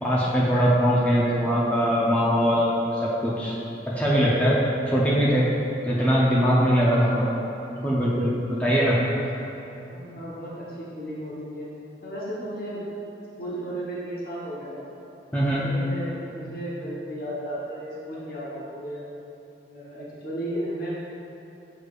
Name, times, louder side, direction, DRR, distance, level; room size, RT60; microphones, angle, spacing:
voice 1, 0.0-3.6 3.9-5.5 5.8-7.3 7.8-9.0 15.3-15.7, equal, 10° left, -7 dB, 0.6 m, -21 dB
voice 2, 9.9-11.7 12.0-12.9 13.4-14.8 15.5-19.0 19.7-20.9, right 1 dB, 55° left, -6 dB, 0.9 m, -34 dB
6.5 x 6.4 x 2.4 m, 3.0 s
head